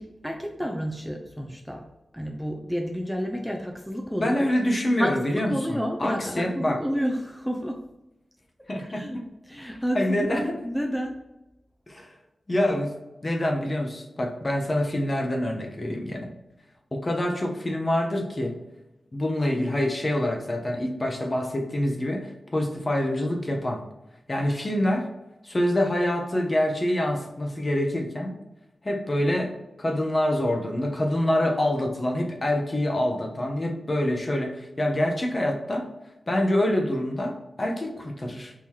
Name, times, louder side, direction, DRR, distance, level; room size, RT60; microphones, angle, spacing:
voice 1, 0.0-1.9 2.1-4.5 5.0-7.8 8.9-11.2, equal, ahead, 1 dB, 0.6 m, -30 dB
voice 2, 4.2-6.8 8.7-9.3 9.6-10.6 11.9-12.1 12.5-12.9 13.2-16.3 16.9-18.6 19.1-23.8 24.3-25.1 25.4-28.4 28.8-29.5 29.8-35.9 36.3-38.5, left 1 dB, 35° left, 2 dB, 0.8 m, -26 dB
3.7 x 2.9 x 4.5 m, 0.96 s
cardioid pair, 55°, 0 cm